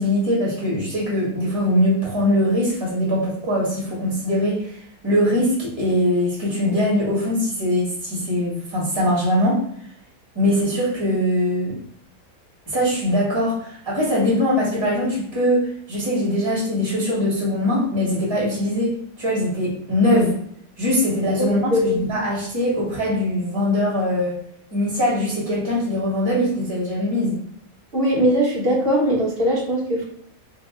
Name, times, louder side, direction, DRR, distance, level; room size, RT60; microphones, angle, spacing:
voice 1, 0.0-4.7 5.0-9.6 10.3-11.8 12.7-20.3 20.8-24.4 24.7-27.4, left 1 dB, 20° right, -6 dB, 1.3 m, -21 dB
voice 2, 27.9-30.1, equal, 45° right, -2 dB, 1.0 m, -20 dB
2.9 x 2.8 x 3.5 m, 0.65 s
omnidirectional pair, 1.5 m